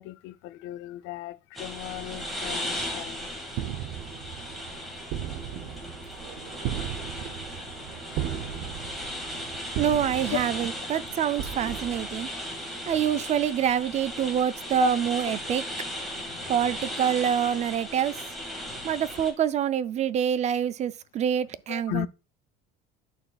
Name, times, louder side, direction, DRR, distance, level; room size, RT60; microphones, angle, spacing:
voice 1, 0.0-3.3 7.6-7.7 9.7-9.8 10.3-10.4 12.8-12.9 14.8-14.9 15.3-15.6 16.1-16.5 18.6-18.8 21.7-22.1, left 16 dB, 65° left, 0.5 m, -35 dB
sound 1, 1.5-19.3, equal, ahead, 2.0 m, -37 dB
sound 2, 3.5-12.8, right 10 dB, 60° right, 0.8 m, -37 dB
voice 2, 9.8-12.3 12.9-15.6 16.5-18.2 18.8-22.1, right 9 dB, 35° right, 0.4 m, -26 dB
12.0 x 4.3 x 2.3 m
cardioid pair, 135°, 21 cm